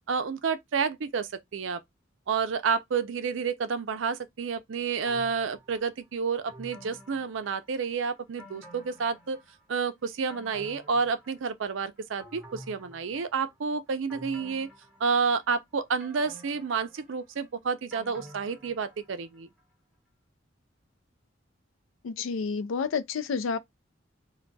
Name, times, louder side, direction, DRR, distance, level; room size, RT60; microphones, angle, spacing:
voice 1, 0.1-1.8 2.3-9.4 9.7-14.7 15.0-19.5, right 5 dB, 75° right, 0.5 m, -30 dB
sound 1, 5.1-5.9 6.5-7.9 8.4-9.7 10.1-11.7 12.2-13.5 14.1-15.5 16.0-19.3 19.6-19.7, equal, 5° right, 0.9 m, -50 dB
voice 2, 22.0-23.6, left 5 dB, 85° left, 0.4 m, -30 dB
2.2 x 2.2 x 3.9 m
head